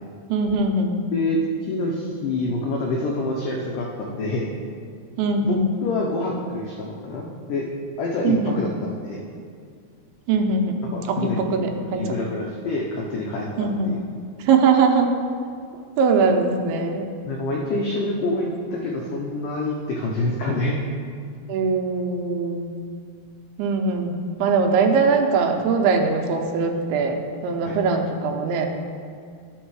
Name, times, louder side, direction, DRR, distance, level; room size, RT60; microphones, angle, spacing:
voice 1, 0.3-1.0 5.2-5.7 8.2-8.6 10.3-10.8 11.1-12.2 13.6-13.9 14.4-15.1 16.0-17.1 21.5-22.7 23.6-24.1 24.4-27.2 27.4-28.7, right 4 dB, 75° right, 3 dB, 2.6 m, -21 dB
voice 2, 1.1-4.5 5.4-5.6 5.8-7.7 8.0-9.2 10.8-11.4 11.7-14.0 17.2-20.8 27.6-27.8, left 2 dB, 80° left, -2 dB, 1.9 m, -27 dB
13.0 x 4.5 x 4.7 m, 2.2 s
omnidirectional pair, 4.7 m